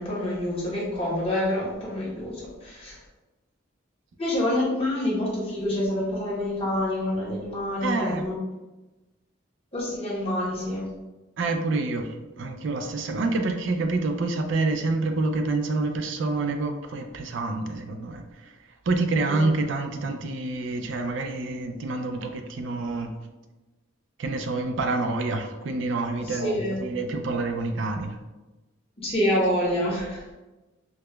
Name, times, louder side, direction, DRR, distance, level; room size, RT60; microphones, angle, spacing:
voice 1, 0.0-3.0 4.2-8.3 9.7-10.8 19.3-19.4 26.2-26.8 29.0-30.2, left 1 dB, 30° left, -6 dB, 0.7 m, -27 dB
voice 2, 7.8-8.2 11.4-18.5 18.9-23.1 24.2-28.2, right 3 dB, 65° right, 5 dB, 0.4 m, -27 dB
4.7 x 2.1 x 2.2 m, 1.1 s
head